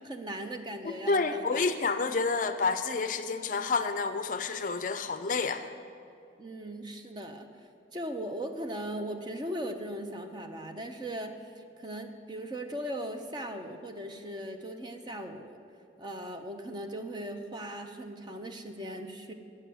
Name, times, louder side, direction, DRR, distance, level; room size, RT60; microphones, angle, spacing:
voice 1, 0.0-1.6 6.4-7.5 7.9-15.6 16.0-19.3, right 1 dB, 25° right, 5 dB, 0.6 m, -38 dB
voice 2, 0.8-5.7, left 4 dB, 45° left, 9 dB, 0.4 m, -29 dB
9.6 x 6.6 x 7.8 m, 2.6 s
head